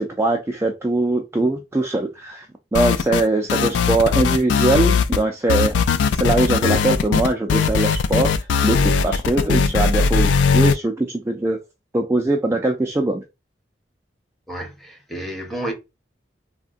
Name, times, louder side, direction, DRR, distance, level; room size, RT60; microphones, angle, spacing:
voice 1, 0.0-2.5 2.7-5.7 6.1-11.6 11.9-13.2, right 2 dB, 15° right, 0.3 m, -21 dB
sound 1, 2.7-3.2 3.5-5.2 5.5-10.7, left 5 dB, 80° left, 0.3 m, -19 dB
voice 2, 14.5-15.7, right 1 dB, ahead, 0.8 m, -30 dB
3.5 x 2.1 x 2.5 m
head